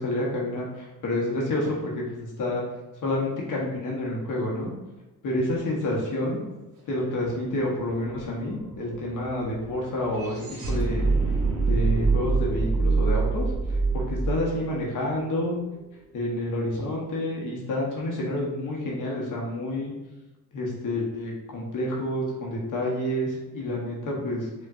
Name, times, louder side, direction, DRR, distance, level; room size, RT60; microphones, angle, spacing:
voice 1, 0.0-2.6 3.0-4.7 5.2-6.4 6.9-11.1 11.7-15.6 16.1-19.9 20.5-24.5, left 1 dB, 60° left, -3 dB, 1.0 m, -29 dB
sound 1, 7.2-7.3 7.6-15.8, right 4 dB, 55° right, 1.4 m, -26 dB
4.6 x 2.4 x 2.4 m, 1.0 s
cardioid pair, 80°, 35 cm